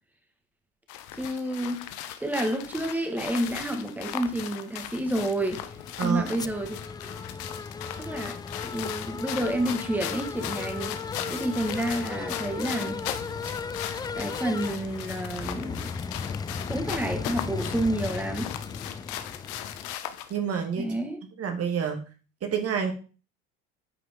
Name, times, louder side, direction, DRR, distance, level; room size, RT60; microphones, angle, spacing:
sound 1, 0.9-20.4, left 11 dB, 65° left, 1.0 m, -38 dB
voice 1, 1.1-1.8 2.2-5.6 6.0-6.8 7.0-7.2 8.0-11.0 11.3-13.0 14.2-15.9 16.7-18.5 20.8-21.2, right 1 dB, 5° right, 1.8 m, -30 dB
sound 2, 5.4-19.9, left 5 dB, 15° left, 0.3 m, -36 dB
voice 2, 6.0-6.5 20.3-20.9 21.4-22.0 22.4-22.9, right 7 dB, 45° right, 1.7 m, -28 dB
9.4 x 5.0 x 3.7 m
hypercardioid pair, 75°, 32 cm